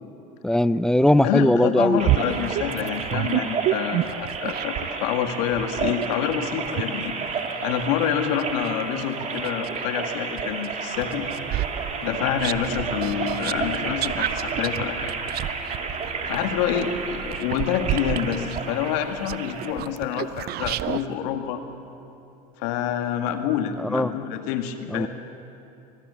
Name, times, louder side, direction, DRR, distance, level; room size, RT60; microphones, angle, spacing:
voice 1, 0.4-2.0 23.8-24.1 24.9-25.1, left 1 dB, 5° left, 16 dB, 0.5 m, -19 dB
voice 2, 1.2-11.3 12.0-15.1 16.3-21.6 22.6-25.1, left 9 dB, 75° left, 7 dB, 2.0 m, -27 dB
sound 1, 2.0-19.7, right 5 dB, 35° right, 3.0 m, -31 dB
sound 2, 2.0-5.0 5.5-9.9 10.4-21.0, right 14 dB, 50° right, 0.6 m, -30 dB
sound 3, 10.9-17.3, right 3 dB, 80° right, 6.1 m, -41 dB
24.5 x 20.0 x 6.9 m, 2.8 s
supercardioid pair, 90°, 21 cm